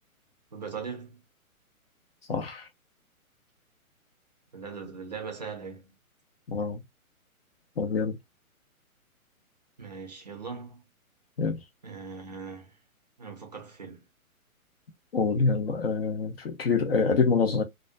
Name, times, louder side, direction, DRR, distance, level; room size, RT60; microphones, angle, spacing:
voice 1, 0.5-1.2 4.5-5.9 9.8-10.8 11.8-12.8 13.2-14.0, right 5 dB, 30° right, 0.4 m, -40 dB
voice 2, 2.3-2.7 6.5-6.8 7.8-8.2 11.4-11.6 15.1-17.6, left 4 dB, 45° left, 0.5 m, -26 dB
2.3 x 2.2 x 2.4 m
hypercardioid pair, 155°, 43 cm